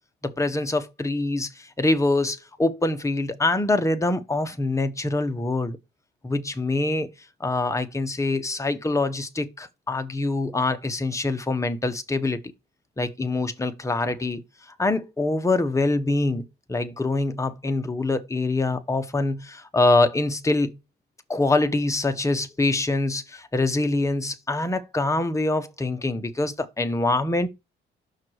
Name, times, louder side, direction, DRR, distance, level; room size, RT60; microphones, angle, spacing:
voice 1, 0.2-5.8 6.2-7.1 7.4-12.4 13.0-14.4 14.8-16.4 16.7-20.8 21.3-27.5, left 2 dB, 15° left, 1.2 m, -24 dB
6.0 x 4.7 x 4.7 m
cardioid pair, 90°, 20 cm